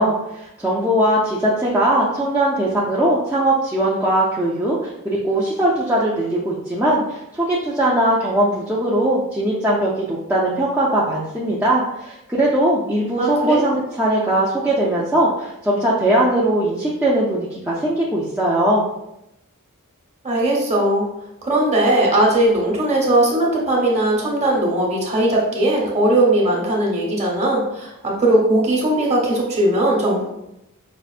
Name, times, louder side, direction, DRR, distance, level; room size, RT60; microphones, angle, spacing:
voice 1, 0.0-18.8, right 1 dB, 10° right, -6 dB, 0.4 m, -20 dB
voice 2, 13.2-13.6 20.2-21.1 21.4-30.2, right 1 dB, 30° right, -3 dB, 1.0 m, -18 dB
5.3 x 2.5 x 2.4 m, 0.86 s
head